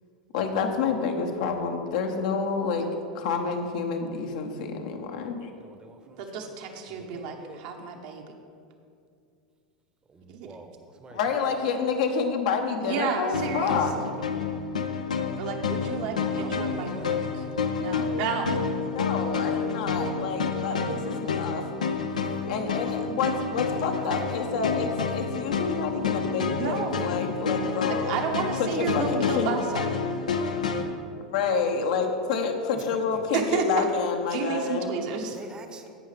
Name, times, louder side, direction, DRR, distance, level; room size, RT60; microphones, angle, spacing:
voice 1, 0.3-2.9 3.1-5.5 11.1-13.9 18.8-21.6 22.5-28.2 28.6-29.6 31.3-35.0, left 5 dB, 70° left, 3 dB, 1.1 m, -28 dB
voice 2, 5.1-6.6 6.9-7.6 10.1-11.7 16.4-17.2 19.0-19.8 22.3-23.4 23.9-24.0 24.4-25.0 32.7-33.4 35.3-36.0, right 3 dB, 25° right, 7 dB, 0.9 m, -48 dB
voice 3, 6.2-8.2 10.3-10.5 12.8-14.1 15.4-17.2 17.8-18.6 26.6-27.1 27.9-29.9 33.3-33.8 34.3-35.4, right 5 dB, 65° right, 2 dB, 1.2 m, -31 dB
sound 1, 13.3-30.8, left 5 dB, 90° left, 0.7 m, -29 dB
16.5 x 5.6 x 3.4 m, 2.4 s
hypercardioid pair, 95°, 4 cm